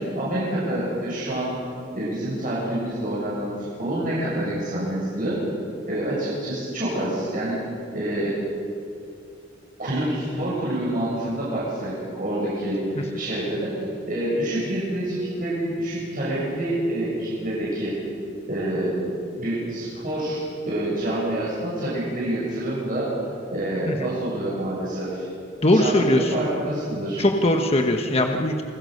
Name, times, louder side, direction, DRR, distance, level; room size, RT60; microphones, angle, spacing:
voice 1, 0.0-1.5 1.9-3.5 3.8-5.4 5.9-7.6 7.9-8.3 9.8-13.7 14.1-17.9 18.5-19.0 19.4-23.1 23.5-25.2 25.7-27.2, right 1 dB, 45° right, -7 dB, 7.3 m, -27 dB
voice 2, 25.6-26.3 27.2-28.6, left 1 dB, 30° left, 4 dB, 1.3 m, -20 dB
28.0 x 21.0 x 6.7 m, 2.4 s
head